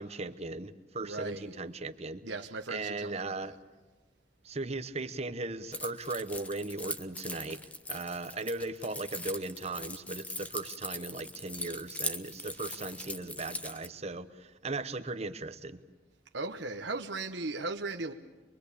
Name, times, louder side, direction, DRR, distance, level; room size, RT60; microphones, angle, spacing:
voice 1, 0.0-2.2 2.7-3.5 4.4-7.6 7.9-15.8, right 2 dB, 35° right, 1.0 m, -37 dB
voice 2, 1.0-1.5 2.2-3.6 16.3-18.1, right 3 dB, 80° right, 1.1 m, -37 dB
Keys jangling, 5.7-13.9, left 2 dB, 10° left, 0.8 m, -41 dB
24.0 x 23.5 x 8.5 m
head